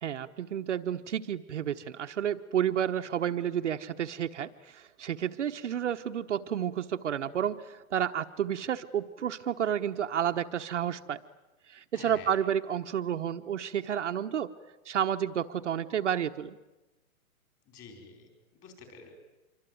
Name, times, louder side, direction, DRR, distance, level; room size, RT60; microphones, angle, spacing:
voice 1, 0.0-11.2 11.7-14.5 14.8-16.6, right 9 dB, 55° right, 6 dB, 1.1 m, -31 dB
voice 2, 11.9-12.4 17.6-19.1, left 5 dB, 20° left, 4 dB, 5.0 m, -50 dB
26.5 x 23.5 x 9.4 m, 1.1 s
hypercardioid pair, 175°, 43 cm